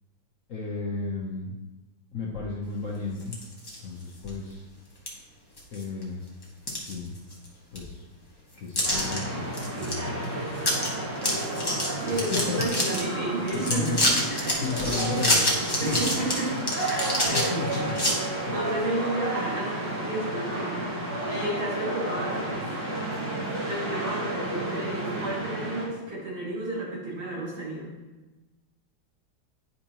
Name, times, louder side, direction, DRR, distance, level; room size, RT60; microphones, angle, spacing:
voice 1, 0.5-1.5 2.1-3.4 3.8-4.6 5.7-6.2 6.8-7.1 7.7-8.0 8.5-10.2 12.1-13.0 13.6-14.3 14.6-16.0 17.3-17.9 18.4-18.6, left 4 dB, 50° left, -3 dB, 1.0 m, -34 dB
sound 1, 3.2-3.8 4.3-4.4 5.1-5.2 5.6-6.0 6.4-7.5 7.8-7.9 8.8-9.2 9.5-9.9 10.2-10.3 10.6-10.9 11.2-13.0 13.5-18.1, left 1 dB, 15° left, 0.8 m, -27 dB
sound 2, 8.8-25.9, right 1 dB, 65° right, 2.0 m, -32 dB
voice 2, 12.0-14.0 14.3-15.2 15.8-16.5 16.9-17.5 18.2-20.9 21.3-22.7 23.6-27.9, right 1 dB, 80° right, -6 dB, 3.0 m, -32 dB
9.9 x 5.1 x 2.9 m, 1.1 s
omnidirectional pair, 2.2 m